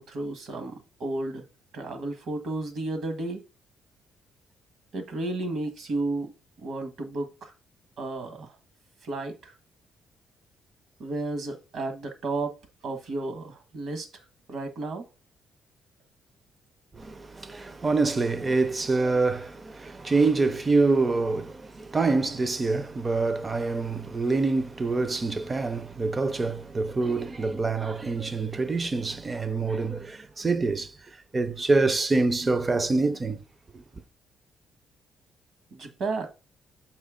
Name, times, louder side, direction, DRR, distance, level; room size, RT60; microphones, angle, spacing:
voice 1, 0.0-1.4 1.7-3.4 4.9-7.5 8.0-8.5 9.0-9.5 11.0-12.5 12.8-14.1 14.5-15.0 35.7-36.3, right 2 dB, 70° right, 1.6 m, -32 dB
voice 2, 16.9-30.9 31.3-33.4, right 3 dB, 25° right, 0.6 m, -26 dB
6.5 x 4.4 x 3.7 m
cardioid pair, 90°, 0 cm